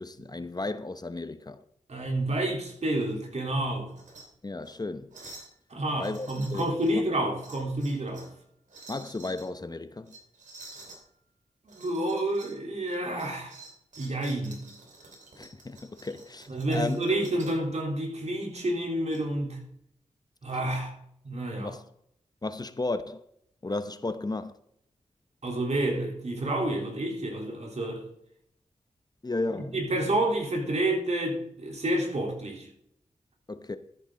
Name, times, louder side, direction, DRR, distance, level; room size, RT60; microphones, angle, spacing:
voice 1, 0.0-1.6 4.4-5.1 5.9-6.7 8.9-10.1 15.4-17.0 21.6-21.8 22.4-23.2 23.6-24.5 29.2-29.8 33.5-33.8, left 2 dB, 30° left, 0.8 m, -34 dB
voice 2, 1.9-4.0 5.7-8.3 11.6-13.6 14.0-14.7 16.5-19.6 20.4-20.9 21.2-21.8 25.4-28.0 29.5-32.7, right 1 dB, 60° right, 3.4 m, -29 dB
sound 1, 3.9-4.2 4.6-4.8 5.1-5.5 6.0-6.9 7.4-8.3 8.7-9.5 10.1-11.0 11.7-12.6 12.9-17.6 18.5-19.2, right 2 dB, 80° right, 2.8 m, -50 dB
13.0 x 7.9 x 3.8 m
cardioid pair, 45°, 13 cm